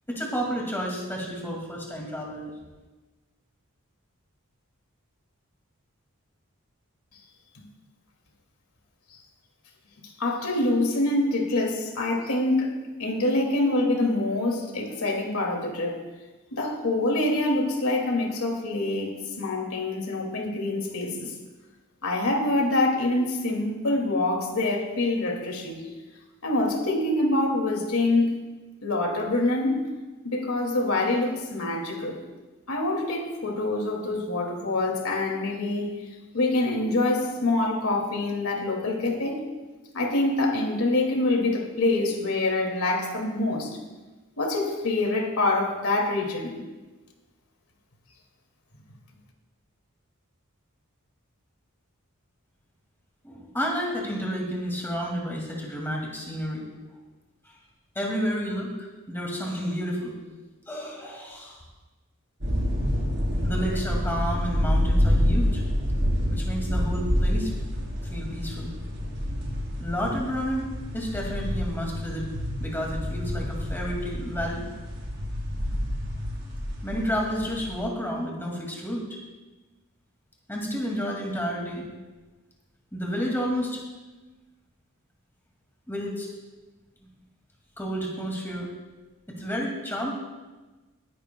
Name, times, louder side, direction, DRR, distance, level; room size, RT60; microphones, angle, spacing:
voice 1, 0.1-2.6 53.2-56.7 58.0-60.1 60.7-61.6 63.4-65.6 66.3-67.5 68.1-68.7 69.8-72.3 72.6-74.7 76.8-79.2 80.5-81.9 82.9-83.8 85.9-86.3 87.8-88.7 89.4-90.1, equal, 10° left, -2 dB, 2.2 m, -30 dB
voice 2, 10.2-16.0 16.5-21.3 22.0-25.9 26.4-28.4 28.8-29.9 30.2-32.2 32.7-36.0 36.3-39.5 39.9-43.8 44.4-46.6, left 2 dB, 85° left, 1 dB, 2.3 m, -25 dB
sound 1, 62.4-77.8, equal, 50° right, 4.0 m, -28 dB
23.0 x 10.0 x 2.3 m, 1.2 s
head